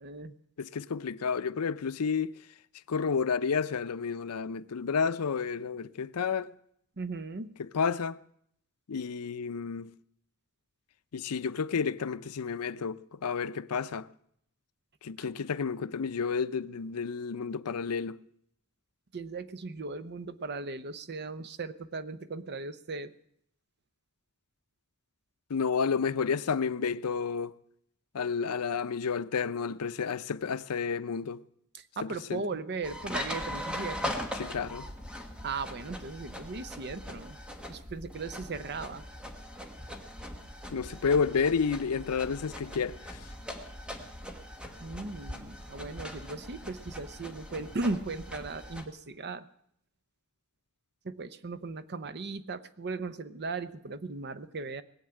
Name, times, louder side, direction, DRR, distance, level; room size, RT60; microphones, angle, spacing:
voice 1, 0.0-0.4 7.0-7.5 15.2-15.3 19.1-23.1 31.7-34.1 35.4-37.4 37.7-39.0 44.8-49.5 51.0-54.8, right 3 dB, 50° right, 0.7 m, -37 dB
voice 2, 0.6-2.3 2.9-6.5 7.6-8.2 8.9-9.9 11.1-14.1 15.0-18.2 25.5-27.6 28.1-31.4 32.0-32.4 34.4-34.9 40.7-43.2, left 5 dB, 90° left, 0.5 m, -31 dB
sound 1, 32.8-48.9, left 1 dB, 5° right, 1.3 m, -40 dB
20.0 x 7.3 x 8.9 m
head